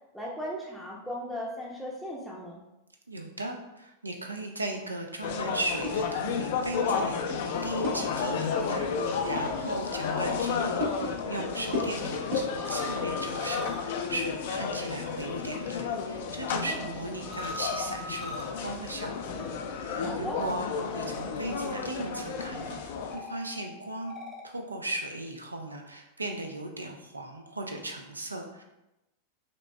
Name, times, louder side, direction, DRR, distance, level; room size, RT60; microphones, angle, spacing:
voice 1, 0.1-2.6 7.8-8.1 16.6-16.9 20.0-20.4, equal, ahead, -5 dB, 0.6 m, -37 dB
voice 2, 3.1-19.4 19.7-24.1 24.4-28.6, right 1 dB, 80° right, 3 dB, 0.5 m, -37 dB
sound 1, 5.2-23.2, left 6 dB, 50° left, 0.4 m, -32 dB
sound 2, 5.3-12.9, left 1 dB, 60° right, 1.2 m, -39 dB
sound 3, 5.7-10.9 11.2-24.5, left 1 dB, 20° right, 1.0 m, -44 dB
5.1 x 2.9 x 2.2 m, 0.93 s
figure-of-eight pair, 90°, 0 cm